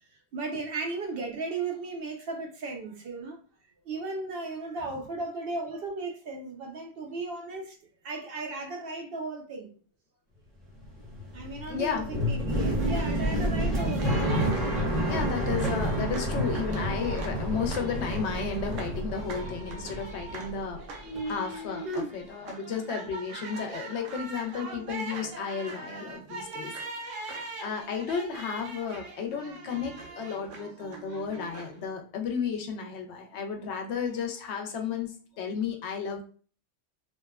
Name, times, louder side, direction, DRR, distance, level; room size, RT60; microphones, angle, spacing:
voice 1, 0.3-3.4 3.9-7.8 8.0-9.7 11.3-14.4 21.8-22.1, right 3 dB, 60° right, 0.7 m, -35 dB
sound 1, 10.7-20.8 21.0-21.9, equal, ahead, 0.7 m, -30 dB
voice 2, 11.7-12.1 15.1-20.8 21.2-26.7 27.0-36.2, left 6 dB, 70° left, 0.8 m, -33 dB
sound 2, 12.8-31.9, right 3 dB, 85° right, 1.0 m, -42 dB
2.8 x 2.1 x 2.3 m
omnidirectional pair, 1.3 m